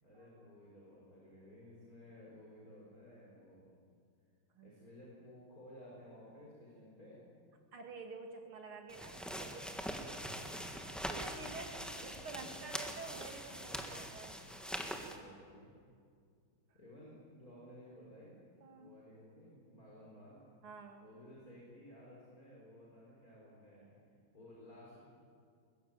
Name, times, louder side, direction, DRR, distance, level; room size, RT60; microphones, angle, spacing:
voice 1, 0.0-3.7 4.6-7.2 10.0-10.5 11.7-12.8 14.9-15.7 16.7-18.4 18.8-20.5 21.0-25.0, left 1 dB, 45° left, -5 dB, 4.9 m, -56 dB
voice 2, 7.7-9.6 10.7-14.4 16.7-16.8 18.6-19.0 20.6-21.1, right 4 dB, 90° right, 4 dB, 3.2 m, -49 dB
sound 1, 8.9-15.2, equal, ahead, 1.5 m, -43 dB
22.0 x 21.0 x 9.0 m, 2.3 s
omnidirectional pair, 2.3 m